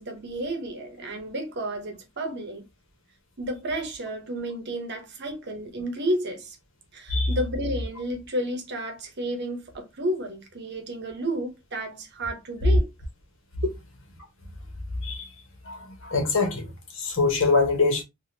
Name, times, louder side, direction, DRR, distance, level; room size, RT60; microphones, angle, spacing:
voice 1, 0.0-2.7 3.4-6.6 6.9-12.9 13.6-13.7, right 1 dB, 50° right, 0.8 m, -31 dB
voice 2, 15.6-18.0, left 3 dB, 60° left, 1.0 m, -24 dB
3.4 x 2.3 x 2.7 m
head